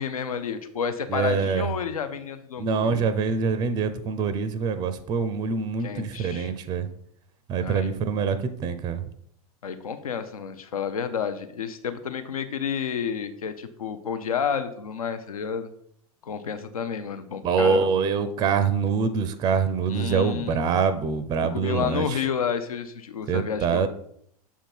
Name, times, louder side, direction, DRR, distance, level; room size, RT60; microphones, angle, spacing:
voice 1, 0.0-3.1 5.8-6.5 7.6-7.9 9.6-15.7 16.2-17.9 19.9-20.6 21.4-23.9, left 7 dB, 70° left, 10 dB, 0.6 m, -30 dB
voice 2, 1.1-1.7 2.6-6.9 7.5-9.0 17.4-22.2 23.3-23.9, right 6 dB, 20° right, 12 dB, 0.5 m, -25 dB
7.0 x 3.7 x 4.5 m, 0.68 s
figure-of-eight pair, 90°, 19 cm